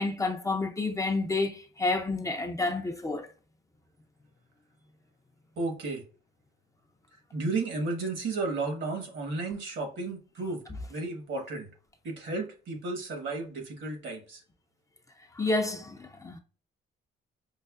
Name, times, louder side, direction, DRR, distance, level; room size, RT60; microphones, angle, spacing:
voice 1, 0.0-3.3 15.3-16.4, left 3 dB, 15° left, 0.5 m, -29 dB
voice 2, 5.6-6.0 7.1-10.6 10.9-11.7 12.0-14.4, right 3 dB, 70° right, 1.3 m, -33 dB
5.4 x 2.0 x 2.4 m
cardioid pair, 90°, 20 cm